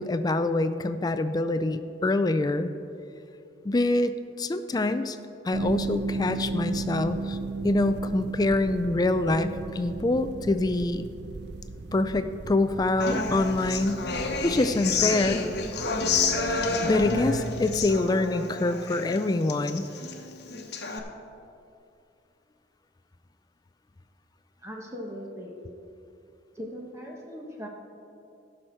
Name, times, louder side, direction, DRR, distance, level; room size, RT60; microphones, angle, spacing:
voice 1, 0.0-2.7 3.6-5.2 5.4-7.4 7.6-11.1 11.9-14.1 14.4-15.4 16.5-19.8, left 2 dB, 20° left, 10 dB, 0.3 m, -25 dB
sound 1, 5.5-18.0, right 3 dB, 60° right, 0.4 m, -36 dB
Human voice / Acoustic guitar, 13.0-21.0, left 4 dB, 60° left, 1.0 m, -29 dB
voice 2, 24.6-25.6 26.5-27.7, equal, 15° right, -1 dB, 1.2 m, -39 dB
16.0 x 6.3 x 4.5 m, 2.6 s
head